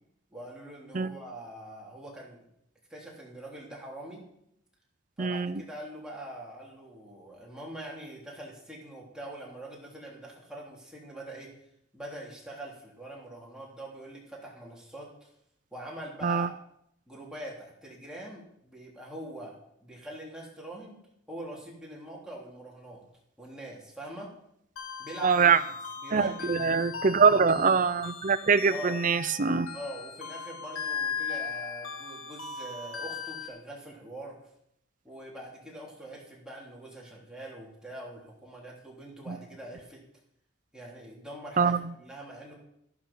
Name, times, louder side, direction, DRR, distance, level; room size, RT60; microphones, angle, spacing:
voice 1, 0.3-2.4 2.9-4.2 5.2-11.5 11.9-15.3 15.7-16.5 17.1-21.0 21.3-23.0 23.4-24.3 25.0-25.7 26.0-27.4 28.7-29.0 29.7-34.4 35.0-40.0 40.7-42.5, right 1 dB, 5° right, -4 dB, 3.5 m, -43 dB
voice 2, 5.2-5.6 16.2-16.5 25.2-25.6 26.1-29.7 39.3-39.4 41.6-41.8, right 5 dB, 40° right, 12 dB, 0.6 m, -23 dB
sound 1, 24.8-33.5, left 6 dB, 80° left, 1.6 m, -38 dB
13.5 x 12.0 x 5.7 m, 0.75 s
head